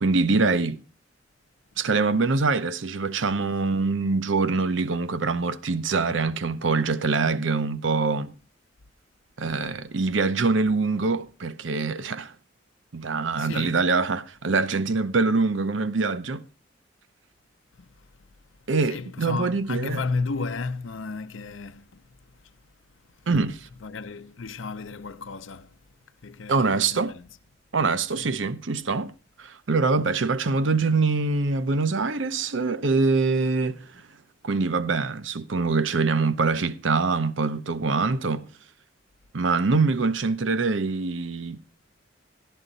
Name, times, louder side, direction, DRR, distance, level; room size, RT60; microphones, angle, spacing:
voice 1, 0.0-0.8 1.8-8.3 9.4-12.3 12.9-16.4 18.7-20.0 23.3-23.7 26.5-27.1 27.7-29.1 29.4-34.0 34.4-38.5 39.3-41.6, right 4 dB, 75° right, 0.7 m, -24 dB
voice 2, 13.3-13.8 17.8-18.1 18.9-22.0 22.4-22.5 23.2-23.3 23.8-25.8 26.2-27.3 28.1-28.3, left 4 dB, 85° left, 0.7 m, -33 dB
12.5 x 12.0 x 3.9 m
head